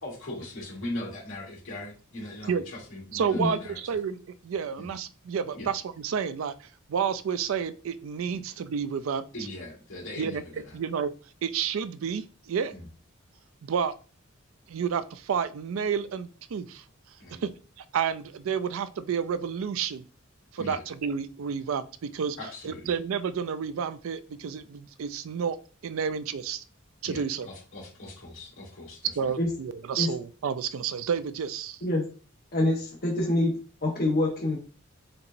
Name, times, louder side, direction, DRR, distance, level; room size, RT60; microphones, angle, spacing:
voice 1, 0.0-3.8 4.8-4.9 5.5-5.7 9.3-10.4 10.6-10.8 12.7-12.9 17.2-17.4 20.6-20.8 22.4-22.9 27.0-29.3, left 1 dB, 65° left, -3 dB, 2.4 m, -40 dB
voice 2, 3.1-4.2 4.4-9.2 10.2-10.4 10.7-11.1 11.4-12.7 13.6-13.9 14.7-16.8 17.4-17.5 17.8-20.0 20.5-22.4 22.6-25.6 25.8-26.6 27.0-27.5 29.2-31.8, right 7 dB, 75° right, 14 dB, 0.4 m, -30 dB
voice 3, 32.5-33.5 33.8-34.6, left 1 dB, 50° left, -2 dB, 1.0 m, -25 dB
4.5 x 3.9 x 2.6 m, 0.38 s
head